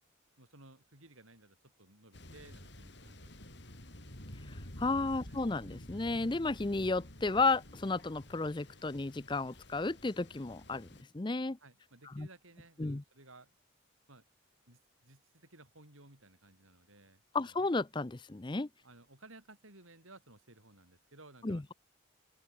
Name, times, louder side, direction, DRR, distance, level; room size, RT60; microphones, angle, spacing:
voice 1, 0.4-3.3 5.3-5.5 11.6-13.6 14.1-14.2 14.7-17.6 18.8-21.6, right 2 dB, 80° right, 7.5 m, -58 dB
Thunder, 2.1-11.0, left 1 dB, 55° left, 5.5 m, -50 dB
voice 2, 4.5-10.9 11.1-11.6 12.1-12.3 12.8-13.0 17.3-18.7 21.4-21.7, left 3 dB, 20° left, 0.5 m, -33 dB
open air
head